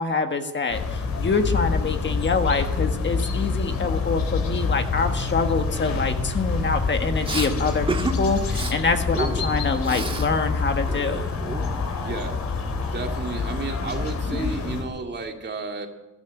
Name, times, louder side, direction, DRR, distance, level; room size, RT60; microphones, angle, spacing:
voice 1, 0.0-11.2, left 4 dB, 40° left, 6 dB, 1.5 m, -25 dB
sound 1, 0.7-14.8, left 4 dB, 65° left, 3.2 m, -27 dB
Respiratory sounds, 7.2-7.5 7.9-8.2 8.5-8.7 9.1-10.3 10.6-12.0, right 2 dB, 15° right, 1.6 m, -30 dB
voice 2, 12.0-12.4 12.9-15.9, right 3 dB, 35° right, 4 dB, 2.3 m, -32 dB
14.0 x 11.5 x 8.3 m, 1.0 s
cardioid pair, 90°, 30 cm